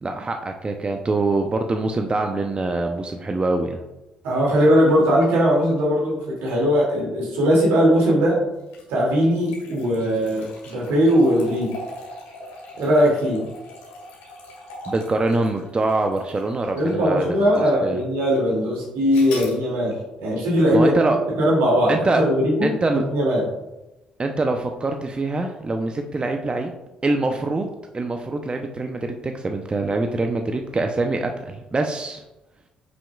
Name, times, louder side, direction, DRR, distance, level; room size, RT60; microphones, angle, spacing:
voice 1, 0.0-3.8 14.9-18.0 20.7-21.2 21.9-22.2 22.6-23.0 24.2-26.7 27.0-32.2, right 2 dB, 30° right, 4 dB, 0.7 m, -24 dB
voice 2, 4.2-8.4 8.9-11.8 12.8-13.4 16.7-20.9 21.4-22.7 23.1-23.5, equal, 75° right, -3 dB, 2.6 m, -19 dB
sound 1, 8.6-17.0 17.6-17.7 19.1-19.6, left 2 dB, 80° left, 2.1 m, -40 dB
9.5 x 6.0 x 2.4 m, 1.0 s
hypercardioid pair, 50°, 3 cm